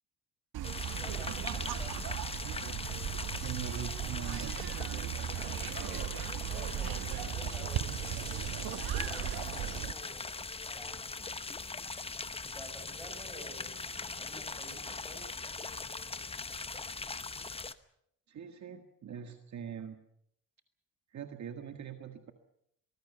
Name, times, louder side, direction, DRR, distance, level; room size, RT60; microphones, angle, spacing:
sound 1, 0.5-9.9, right 11 dB, 80° right, 1.4 m, -37 dB
sound 2, 0.6-17.7, left 4 dB, 15° left, 0.9 m, -41 dB
voice 1, 1.0-2.2 5.8-8.1 9.0-10.3 10.7-11.1 12.4-15.4, right 1 dB, ahead, 3 dB, 7.1 m, -52 dB
voice 2, 3.4-4.7 18.3-20.0 21.1-22.3, right 8 dB, 50° right, 6 dB, 1.8 m, -42 dB
24.0 x 19.5 x 7.0 m, 0.73 s
cardioid pair, 130°, 36 cm